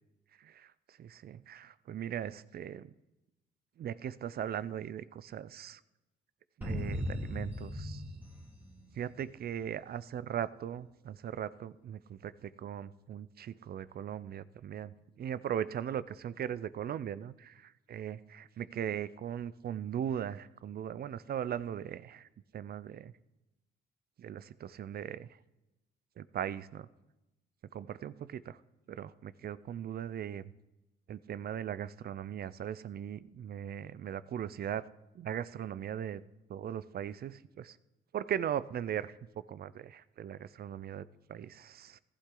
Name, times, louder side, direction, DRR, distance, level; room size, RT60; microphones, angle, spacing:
voice 1, 0.4-2.9 3.8-5.8 6.6-8.0 8.9-22.3 22.5-23.1 24.2-25.3 26.2-26.9 27.7-28.6 28.9-30.5 31.1-34.9 35.1-36.2 36.5-37.8 38.1-39.2 39.5-42.0, right 9 dB, 50° right, 17 dB, 0.5 m, -39 dB
sound 1, 6.6-9.4, left 1 dB, 10° right, 2.2 m, -38 dB
15.0 x 11.5 x 3.8 m, 1.0 s
cardioid pair, 90°, 20 cm